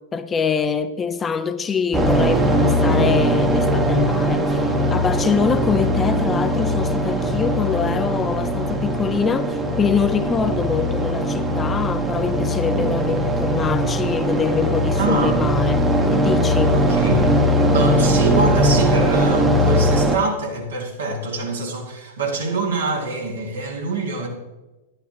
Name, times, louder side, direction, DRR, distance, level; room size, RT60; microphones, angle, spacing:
voice 1, 0.1-15.8 16.1-16.8, left 6 dB, 20° left, 0.5 m, -24 dB
sound 1, 1.9-20.2, equal, 15° right, 1.0 m, -20 dB
voice 2, 15.0-15.5 16.7-17.3 17.7-24.3, right 2 dB, 75° right, 1.8 m, -25 dB
11.0 x 11.0 x 2.8 m
figure-of-eight pair, 95°, 0 cm